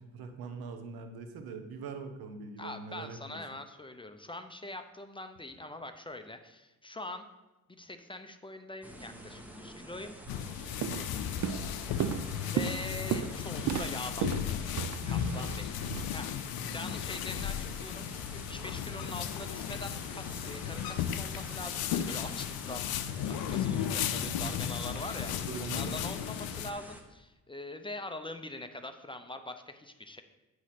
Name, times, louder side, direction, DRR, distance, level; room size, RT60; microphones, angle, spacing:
voice 1, 0.0-3.4 16.7-17.1 24.0-24.8 25.5-25.9, right 4 dB, 85° right, 6 dB, 0.9 m, -43 dB
voice 2, 2.6-7.3 7.7-10.2 11.5-12.1 12.4-14.3 14.6-15.8 16.1-22.9 23.3-25.3 25.6-30.2, left 2 dB, 15° left, 8 dB, 0.5 m, -43 dB
sound 1, 8.8-27.0, equal, 5° right, 0.8 m, -48 dB
sound 2, 10.3-26.7, left 9 dB, 85° left, 0.5 m, -35 dB
Walk footsteps, 10.3-10.5 10.8-11.1 11.4-16.0, right 10 dB, 55° right, 0.4 m, -34 dB
8.9 x 3.1 x 5.7 m, 1.0 s
cardioid pair, 95°, 36 cm